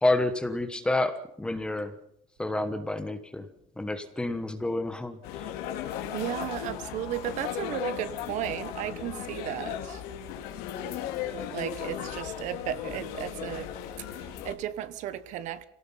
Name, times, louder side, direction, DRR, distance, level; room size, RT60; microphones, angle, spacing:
voice 1, 0.0-1.9 2.4-3.5 3.8-5.4, left 2 dB, 5° left, 1.2 m, -29 dB
sound 1, 5.2-14.5, left 10 dB, 60° left, 2.8 m, -36 dB
voice 2, 6.1-10.0 11.5-13.7 14.2-15.6, right 11 dB, 45° right, 1.2 m, -34 dB
26.5 x 18.0 x 5.7 m
cardioid pair, 175°, 18 cm